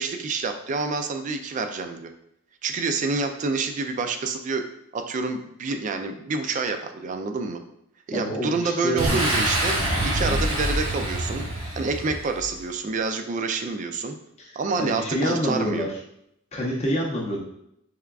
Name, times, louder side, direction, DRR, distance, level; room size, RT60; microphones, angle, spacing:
voice 1, 0.0-2.1 2.6-4.7 4.9-7.6 8.1-9.8 10.0-11.5 11.7-14.2 14.5-15.9, right 4 dB, 35° right, 6 dB, 0.3 m, -28 dB
voice 2, 8.1-9.2 10.3-10.4 11.6-11.7 14.4-14.5 14.8-15.9 16.5-17.4, equal, 30° left, -3 dB, 0.5 m, -27 dB
Boom, 9.0-12.6, right 1 dB, 80° right, 1.0 m, -25 dB
3.5 x 3.4 x 2.3 m, 0.75 s
head